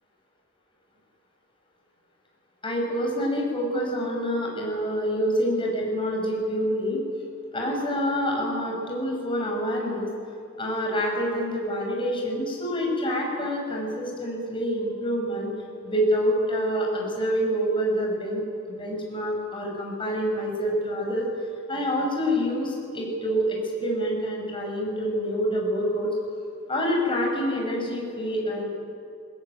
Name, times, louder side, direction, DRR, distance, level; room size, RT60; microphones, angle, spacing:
voice 1, 2.6-7.0 7.5-10.1 10.6-15.5 15.8-18.4 18.7-21.3 21.7-26.1 26.7-28.6, equal, 25° left, 0 dB, 6.4 m, -27 dB
21.0 x 21.0 x 9.1 m, 2.4 s
head